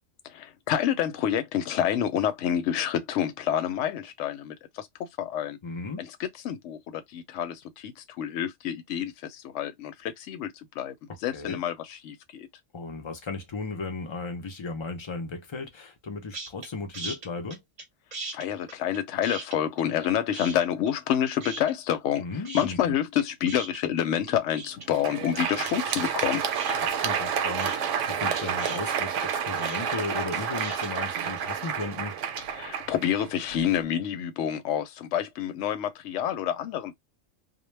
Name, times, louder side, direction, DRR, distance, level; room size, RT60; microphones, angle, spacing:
voice 1, 0.3-4.9 5.2-5.6 6.0-10.9 11.2-12.5 18.3-22.2 22.5-26.4 32.5-37.0, left 10 dB, 70° left, 0.9 m, -28 dB
voice 2, 5.6-6.0 11.3-11.6 12.7-17.6 22.2-22.9 26.8-32.2, left 3 dB, 40° left, 0.4 m, -35 dB
sound 1, 16.3-16.7 16.9-17.8 18.1-20.1 20.3-21.1 21.4-22.2 22.4-30.9, right 3 dB, 40° right, 0.7 m, -39 dB
Crowd, 24.8-33.8, right 7 dB, 75° right, 0.9 m, -30 dB
2.2 x 2.2 x 3.1 m
omnidirectional pair, 1.3 m